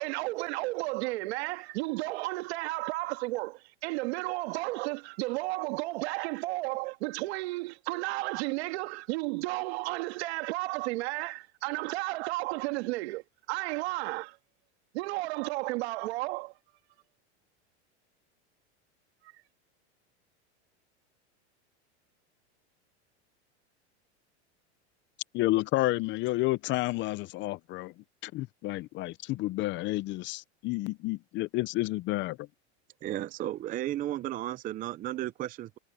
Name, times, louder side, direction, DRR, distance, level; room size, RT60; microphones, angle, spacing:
voice 1, 0.0-13.2 13.5-14.4 14.9-16.5, right 22 dB, 70° right, 1.8 m, -33 dB
voice 2, 25.3-27.9 28.2-32.5, left 18 dB, 35° left, 0.5 m, -30 dB
voice 3, 33.0-35.8, right 13 dB, 25° right, 0.5 m, -34 dB
supercardioid pair, 135°, 34 cm